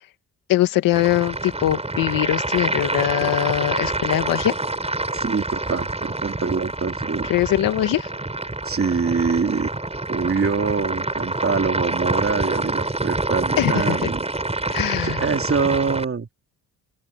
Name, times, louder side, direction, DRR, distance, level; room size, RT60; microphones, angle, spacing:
voice 1, 0.5-4.5 7.3-8.1 13.6-14.1 14.7-15.2, left 14 dB, 85° left, 2.0 m, -22 dB
sound 1, 0.9-16.0, right 2 dB, 20° right, 5.7 m, -26 dB
voice 2, 5.1-7.3 8.6-9.7 10.1-14.2 15.0-16.3, right 5 dB, 40° right, 2.9 m, -24 dB
open air
supercardioid pair, 60°, 33 cm